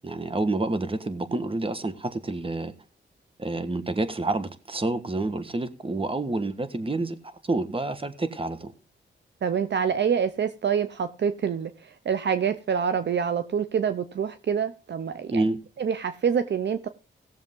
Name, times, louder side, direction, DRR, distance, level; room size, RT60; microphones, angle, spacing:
voice 1, 0.0-2.7 3.4-7.2 7.4-8.7 15.3-15.6, right 2 dB, 25° right, 1.5 m, -28 dB
voice 2, 9.4-15.4 15.8-16.9, right 7 dB, 60° right, 0.7 m, -26 dB
17.5 x 7.2 x 3.7 m
cardioid pair, 70°, 20 cm